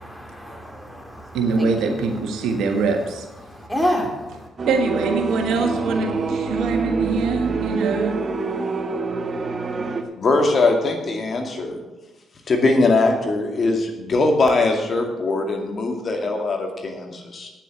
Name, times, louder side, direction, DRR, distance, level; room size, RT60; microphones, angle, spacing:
voice 1, 0.0-2.0 3.4-4.5, equal, 5° left, 1 dB, 3.5 m, -28 dB
voice 2, 1.3-3.2 4.7-8.2, right 4 dB, 75° right, 4 dB, 1.5 m, -23 dB
sound 1, 4.6-10.0, right 4 dB, 45° right, 1.2 m, -26 dB
voice 3, 10.2-11.8 12.5-17.5, left 3 dB, 50° left, 3 dB, 2.2 m, -21 dB
9.2 x 7.5 x 8.2 m, 1.1 s
hypercardioid pair, 50°, 0 cm